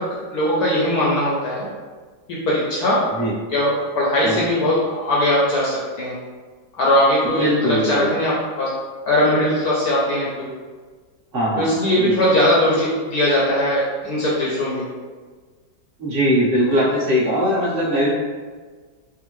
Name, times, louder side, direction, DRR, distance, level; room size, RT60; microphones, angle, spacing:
voice 1, 0.0-1.7 2.3-3.0 3.5-6.2 6.8-8.7 9.1-10.5 11.6-14.8, left 1 dB, 70° left, -5 dB, 0.9 m, -20 dB
voice 2, 7.2-8.1 11.3-12.1 16.0-18.1, equal, 40° right, -8 dB, 1.0 m, -20 dB
3.6 x 2.0 x 3.0 m, 1.5 s
omnidirectional pair, 2.1 m